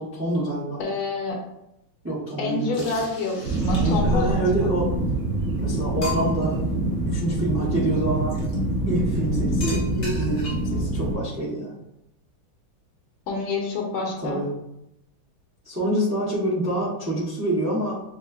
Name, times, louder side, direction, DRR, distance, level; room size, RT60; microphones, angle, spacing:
voice 1, 0.0-0.8 2.0-2.9 3.8-4.9 5.6-6.6 7.0-8.4 8.9-11.7 14.2-14.5 15.6-18.0, right 1 dB, 15° right, -8 dB, 0.4 m, -26 dB
voice 2, 0.8-1.4 2.4-4.7 13.3-14.4, left 3 dB, 75° left, 0 dB, 1.6 m, -28 dB
sound 1, 2.7-4.2 5.1-5.2 5.6-5.7 6.0-6.6 8.3-8.6 9.6-10.8, left 3 dB, 50° left, 0.7 m, -36 dB
sound 2, 3.4-11.1, right 1 dB, 90° right, 1.7 m, -25 dB
6.1 x 2.2 x 2.4 m, 0.85 s
omnidirectional pair, 2.3 m